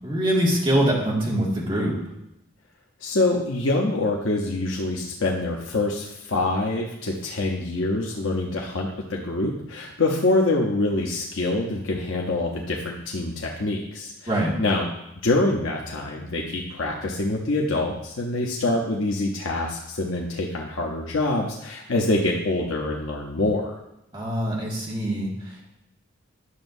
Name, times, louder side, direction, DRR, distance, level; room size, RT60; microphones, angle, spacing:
voice 1, 0.0-1.9 14.3-14.6 24.1-25.8, right 1 dB, 25° right, -4 dB, 2.0 m, -24 dB
voice 2, 3.0-14.3 14.6-14.9 15.2-23.7, left 2 dB, 85° left, -1 dB, 0.9 m, -25 dB
11.0 x 6.8 x 2.7 m, 0.85 s
head